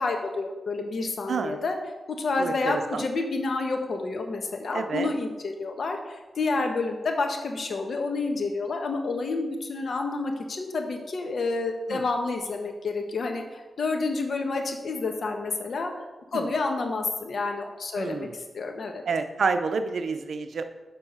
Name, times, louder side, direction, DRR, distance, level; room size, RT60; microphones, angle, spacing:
voice 1, 0.0-1.8 2.1-15.9 16.3-18.3 18.5-19.0, left 3 dB, 65° left, 4 dB, 1.2 m, -29 dB
voice 2, 1.3-1.6 2.4-3.0 4.7-5.1 11.9-12.0 16.3-16.5 18.0-18.3 19.1-20.6, right 5 dB, 75° right, 8 dB, 0.6 m, -28 dB
6.8 x 5.5 x 5.5 m, 1.2 s
cardioid pair, 80°, 0 cm